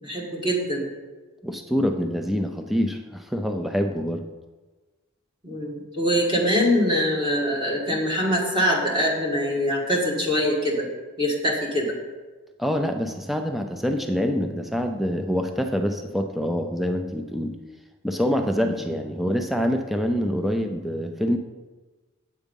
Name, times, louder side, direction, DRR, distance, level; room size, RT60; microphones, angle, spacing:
voice 1, 0.0-0.9 5.4-10.9 11.2-12.0, equal, 20° right, -2 dB, 1.6 m, -23 dB
voice 2, 1.4-4.2 12.6-17.6 18.0-21.4, equal, ahead, 5 dB, 0.4 m, -25 dB
8.1 x 7.2 x 5.3 m, 1.3 s
head